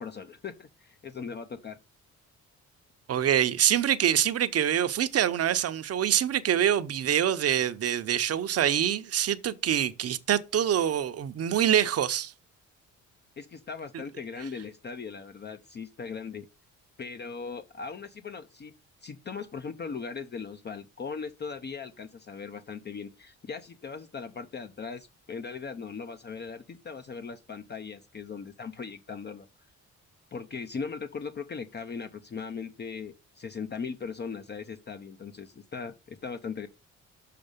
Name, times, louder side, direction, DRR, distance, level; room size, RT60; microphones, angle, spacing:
voice 1, 0.0-1.8 13.4-16.5 17.0-18.7 19.0-29.5 30.3-36.7, left 5 dB, 35° left, 0.7 m, -39 dB
voice 2, 3.1-12.3, right 10 dB, 50° right, 0.8 m, -25 dB
6.8 x 5.2 x 5.1 m
cardioid pair, 90°, 30 cm